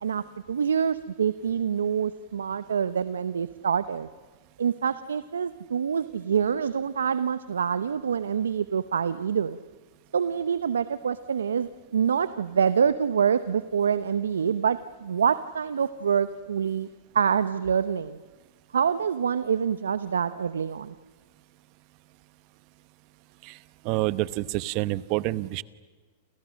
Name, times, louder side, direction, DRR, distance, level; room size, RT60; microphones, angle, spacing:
voice 1, 0.0-4.1 4.6-9.6 10.1-16.9 17.1-18.2 18.7-20.9, right 7 dB, 85° right, 13 dB, 0.9 m, -26 dB
voice 2, 23.8-25.6, right 19 dB, 50° right, 16 dB, 1.0 m, -28 dB
29.5 x 28.5 x 6.4 m, 1.4 s
hypercardioid pair, 110°, 0 cm